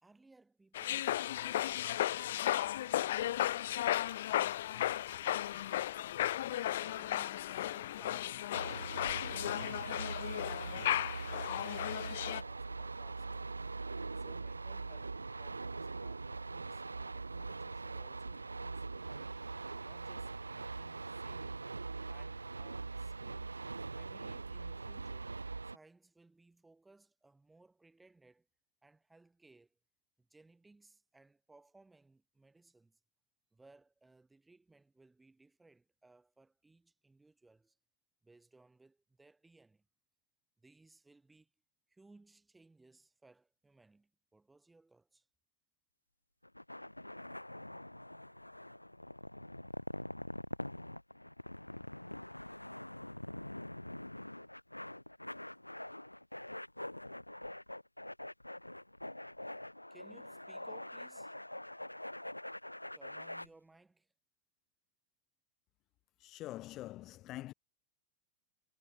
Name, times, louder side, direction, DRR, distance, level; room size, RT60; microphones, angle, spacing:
voice 1, 0.0-3.8 4.2-5.0 5.4-6.0 6.4-11.0 14.1-19.4 19.8-21.6 22.1-23.6 24.0-25.3 25.6-28.5 28.8-29.8 30.2-33.0 33.5-37.8 38.2-39.9 40.6-41.5 41.9-45.3 59.9-61.3 62.9-64.1, right 3 dB, 10° right, 3.4 m, -64 dB
sound 1, 0.7-12.4, left 13 dB, 60° left, 0.4 m, -35 dB
sound 2, 8.5-25.8, right 3 dB, 80° right, 0.5 m, -42 dB
sound 3, 46.4-63.5, left 1 dB, 85° left, 0.8 m, -45 dB
voice 2, 66.2-67.5, left 16 dB, 35° left, 1.4 m, -45 dB
figure-of-eight pair, 90°, 0 cm